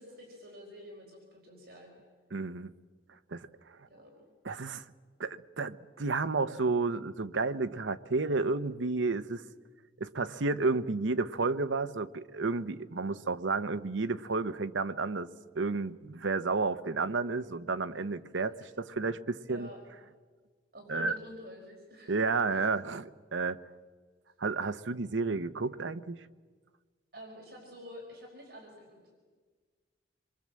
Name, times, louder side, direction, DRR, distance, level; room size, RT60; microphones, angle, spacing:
voice 1, 0.0-1.9 3.9-4.3 18.6-18.7 19.5-19.8 20.7-22.2 22.5-22.6 27.1-29.1, equal, 55° right, -1 dB, 4.7 m, -48 dB
voice 2, 2.3-2.7 3.3-3.9 4.4-4.8 5.2-9.4 10.0-15.3 15.5-19.7 20.9-21.2 22.1-23.6 24.4-26.3, right 3 dB, 90° right, 12 dB, 0.8 m, -31 dB
26.5 x 23.0 x 7.6 m, 1.5 s
head